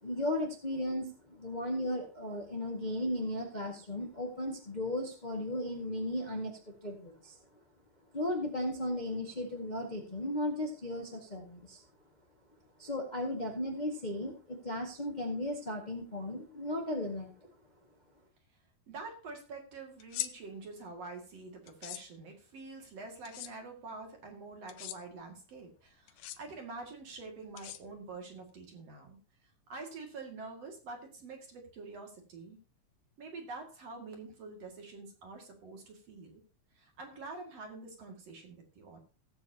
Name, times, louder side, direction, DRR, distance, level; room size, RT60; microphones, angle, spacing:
voice 1, 0.0-7.4 8.1-11.8 12.8-17.3, left 1 dB, 55° left, 1 dB, 0.4 m, -36 dB
voice 2, 18.9-29.2 29.7-32.6 33.2-36.4 36.7-39.0, right 3 dB, 50° right, 2 dB, 3.0 m, -46 dB
sound 1, 20.0-20.3 21.7-22.0 23.2-23.5 24.7-25.0 26.1-26.4 27.6-28.2, left 14 dB, 85° left, 2.5 m, -40 dB
17.5 x 8.0 x 2.8 m, 0.34 s
omnidirectional pair, 4.1 m